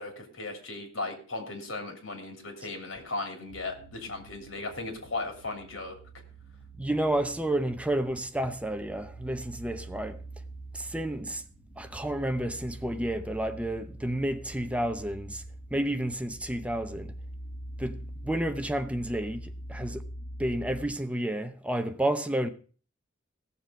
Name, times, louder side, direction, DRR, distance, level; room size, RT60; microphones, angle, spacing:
voice 1, 0.0-5.9, left 2 dB, 85° left, 3.2 m, -37 dB
sound 1, 3.5-20.9, right 1 dB, 60° left, 7.0 m, -44 dB
voice 2, 6.8-10.2 10.7-11.4 11.8-15.4 15.7-17.2 17.8-20.0 20.4-22.5, right 1 dB, 5° right, 0.8 m, -31 dB
16.0 x 7.0 x 5.1 m
head